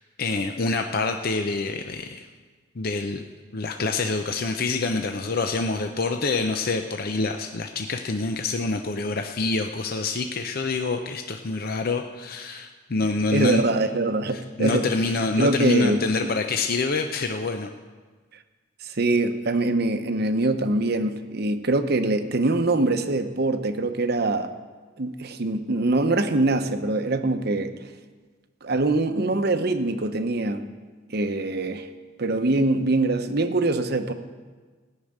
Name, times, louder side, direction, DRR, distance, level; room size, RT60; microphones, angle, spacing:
voice 1, 0.2-2.2 2.8-3.2 3.5-13.8 14.3-17.7, left 3 dB, 50° left, 5 dB, 0.6 m, -26 dB
voice 2, 13.3-14.9 15.4-16.3 18.8-24.5 25.0-27.7 28.6-30.7 31.1-31.9 32.2-34.1, right 2 dB, 55° right, 9 dB, 0.8 m, -23 dB
16.0 x 6.5 x 8.8 m, 1.4 s
head